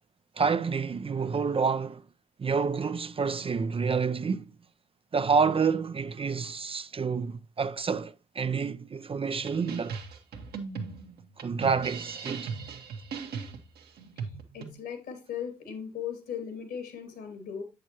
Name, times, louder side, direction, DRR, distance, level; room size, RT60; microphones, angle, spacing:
voice 1, 0.4-2.0 2.4-4.5 5.1-10.0 11.4-12.5, right 5 dB, 30° right, 0.5 m, -28 dB
sound 1, 9.3-14.7, right 5 dB, 65° right, 1.4 m, -38 dB
voice 2, 14.2-17.6, left 8 dB, 70° left, 2.5 m, -38 dB
8.0 x 6.5 x 2.9 m
hypercardioid pair, 45°, 18 cm